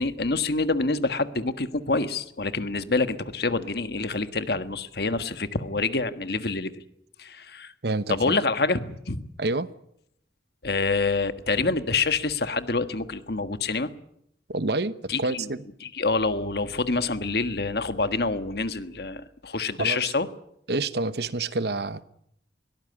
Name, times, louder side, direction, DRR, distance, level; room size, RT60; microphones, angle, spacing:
voice 1, 0.0-6.7 7.2-7.7 8.1-9.3 10.6-13.9 15.1-15.5 15.8-20.3, left 3 dB, 60° left, 1.5 m, -26 dB
voice 2, 7.8-8.4 9.4-9.7 14.5-15.6 19.8-20.1 20.7-22.0, right 2 dB, 65° right, 1.0 m, -28 dB
22.0 x 18.0 x 9.9 m
head